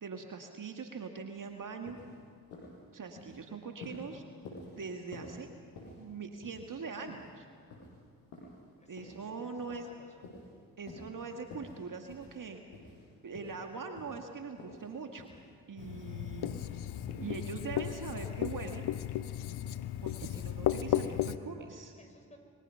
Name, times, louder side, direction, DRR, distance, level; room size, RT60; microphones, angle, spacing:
voice 1, 0.0-2.0 2.9-4.2 4.6-5.5 6.0-7.5 8.9-9.9 10.8-12.6 13.2-15.3 15.7-16.8 17.2-18.9 20.0-21.9, right 5 dB, 45° right, 4 dB, 1.9 m, -42 dB
sound 1, 1.4-1.5 1.9-2.1 2.5-2.8 3.1-3.4 3.8-4.1 4.5-4.7 5.1-5.4 5.8-6.0 6.4-6.8 7.1-7.3 7.7-7.9 8.3-8.6 9.0-9.2 9.6-9.9 10.2-10.5 10.9-11.1 11.5-11.8 12.1-12.4 12.7-13.0 13.3-13.6 14.0-14.3 14.6-14.9 15.2-15.4 15.8-16.1 16.4-16.7 17.1-17.3, left 2 dB, 80° left, 6.2 m, -49 dB
voice 2, 8.8-10.3 21.9-22.4, left 1 dB, 15° left, 3 dB, 6.1 m, -58 dB
Writing, 15.8-21.4, left 12 dB, 60° left, 0.9 m, -35 dB
25.0 x 23.0 x 5.8 m, 2.2 s
hypercardioid pair, 40°, 44 cm